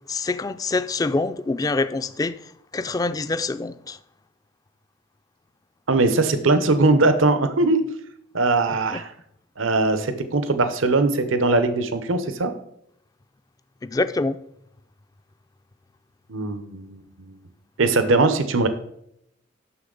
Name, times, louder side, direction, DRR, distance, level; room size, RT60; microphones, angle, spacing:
voice 1, 0.1-2.4 2.7-4.0 8.9-9.0 13.9-14.4, left 3 dB, 20° left, 0.3 m, -25 dB
voice 2, 5.9-7.8 8.3-9.1 9.6-12.5 16.3-17.3 17.8-18.7, right 3 dB, 85° right, 0.8 m, -20 dB
9.8 x 6.7 x 3.9 m
head